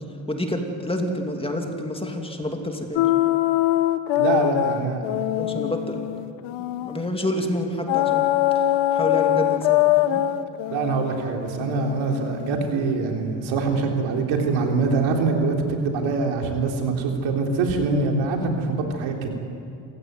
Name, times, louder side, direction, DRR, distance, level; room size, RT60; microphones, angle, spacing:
voice 1, 0.3-3.1 5.4-6.1 6.8-8.3 8.5-8.6 8.9-10.2, left 1 dB, 10° left, 3 dB, 2.8 m, -28 dB
sound 1, 3.0-7.1 7.9-12.6, left 14 dB, 75° left, 1.1 m, -23 dB
voice 2, 4.1-5.0 10.7-19.3, right 4 dB, 85° right, 2 dB, 3.7 m, -24 dB
27.0 x 16.5 x 9.5 m, 2.6 s
cardioid pair, 110°, 46 cm